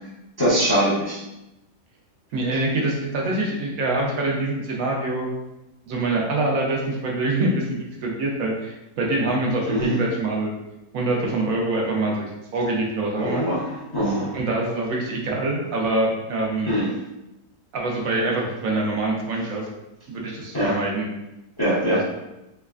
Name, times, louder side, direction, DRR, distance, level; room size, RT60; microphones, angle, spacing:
voice 1, 0.4-1.2 9.7-10.0 13.2-14.3 16.7-16.9 20.5-20.8 21.6-22.0, equal, 25° left, -8 dB, 0.5 m, -22 dB
voice 2, 2.3-5.3 5.9-10.5 10.9-13.5 14.3-16.8 17.7-19.7 20.1-21.1 21.9-22.0, right 2 dB, 70° right, -1 dB, 1.0 m, -25 dB
3.2 x 3.0 x 2.3 m, 0.94 s
omnidirectional pair, 1.5 m